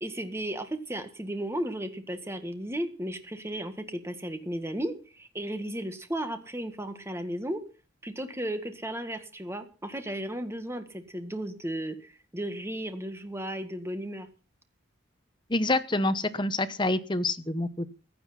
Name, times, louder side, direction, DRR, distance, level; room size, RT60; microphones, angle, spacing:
voice 1, 0.0-7.6 8.0-14.3, right 1 dB, 15° right, 8 dB, 1.8 m, -34 dB
voice 2, 15.5-17.9, left 2 dB, 25° left, 12 dB, 1.0 m, -27 dB
16.0 x 10.5 x 5.8 m, 0.36 s
head